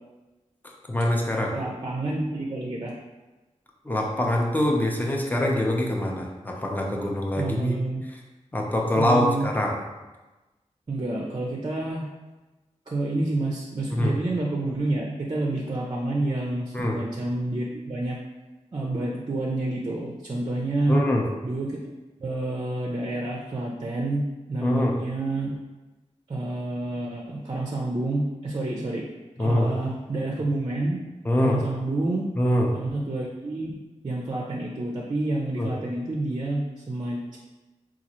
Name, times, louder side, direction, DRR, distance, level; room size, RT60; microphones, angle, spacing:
voice 1, 0.9-1.5 3.8-7.8 8.5-9.7 13.9-14.1 16.7-17.0 20.9-21.2 24.6-25.0 29.4-29.7 31.2-31.6 32.4-32.7 35.6-35.7, left 1 dB, 15° left, 0 dB, 0.6 m, -24 dB
voice 2, 1.5-2.9 7.4-8.0 9.0-9.5 10.9-12.1 12.9-18.2 18.7-21.0 21.4-21.8 22.2-24.2 24.5-25.6 26.3-29.1 29.4-31.0 31.4-32.3 32.7-33.8 34.0-37.4, right 2 dB, 35° right, -2 dB, 0.4 m, -28 dB
3.9 x 2.4 x 2.9 m, 1.1 s
wide cardioid pair, 70°, 13 cm